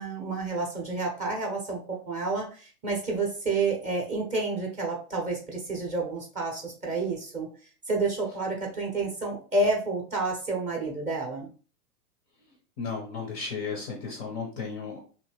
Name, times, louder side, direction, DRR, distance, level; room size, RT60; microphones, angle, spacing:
voice 1, 0.0-7.5 7.9-11.5, right 3 dB, 15° right, 0 dB, 0.6 m, -29 dB
voice 2, 12.8-15.0, left 5 dB, 25° left, 1 dB, 0.5 m, -34 dB
2.7 x 2.5 x 2.9 m, 0.39 s
figure-of-eight pair, 105°, 46 cm